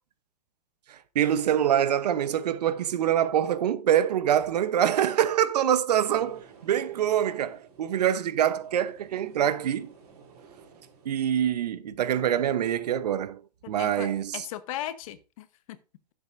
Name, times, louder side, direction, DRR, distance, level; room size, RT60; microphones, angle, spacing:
voice 1, 0.9-9.9 11.0-13.4 13.7-14.5, right 10 dB, 80° right, 0.9 m, -25 dB
sound 1, 6.0-11.2, right 5 dB, 65° right, 3.6 m, -54 dB
voice 2, 13.6-15.8, left 12 dB, 55° left, 1.0 m, -38 dB
13.0 x 7.3 x 2.6 m
hypercardioid pair, 140°, 20 cm